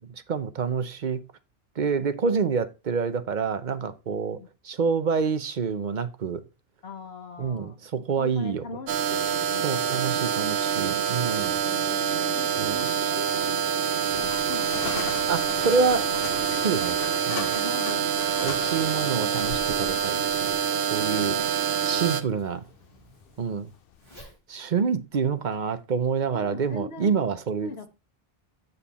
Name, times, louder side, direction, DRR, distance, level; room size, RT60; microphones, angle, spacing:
voice 1, 0.3-1.2 1.8-4.4 4.6-6.4 7.4-8.6 9.6-11.6 12.6-12.8 15.3-16.1 16.6-17.0 17.3-17.6 18.4-21.4 21.8-22.7 23.4-23.7 24.5-27.7, right 5 dB, 50° right, 0.9 m, -27 dB
voice 2, 6.8-7.8 8.2-9.8 11.6-13.8 14.1-15.1 17.5-18.3 18.7-18.8 21.1-21.5 26.3-27.2 27.6-27.9, left 4 dB, 85° left, 1.3 m, -41 dB
sound 1, 8.9-22.2, right 8 dB, 80° right, 0.9 m, -26 dB
sound 2, 13.8-24.2, left 9 dB, 70° left, 0.8 m, -39 dB
Zipper (clothing), 18.2-25.6, equal, 25° right, 3.6 m, -54 dB
7.2 x 6.9 x 4.2 m
omnidirectional pair, 1.0 m